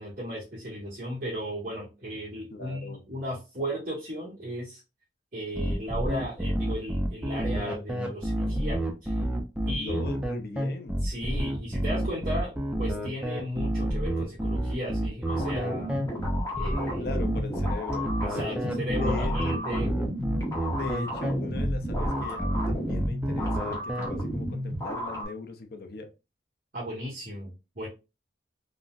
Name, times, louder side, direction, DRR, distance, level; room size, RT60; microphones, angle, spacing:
voice 1, 0.0-4.8 5.3-9.2 9.6-10.0 11.0-12.5 12.8-16.0 16.5-17.1 18.2-20.0 26.7-27.9, equal, 50° right, -9 dB, 1.1 m, -35 dB
voice 2, 2.5-3.0 9.7-11.0 17.0-18.1 18.5-18.7 19.0-19.6 20.7-26.1, left 3 dB, 55° left, 6 dB, 0.5 m, -39 dB
sound 1, 5.5-24.1, right 1 dB, 5° right, 0.4 m, -29 dB
sound 2, 15.3-25.3, equal, 15° left, 0.8 m, -33 dB
3.7 x 2.0 x 2.4 m, 0.28 s
head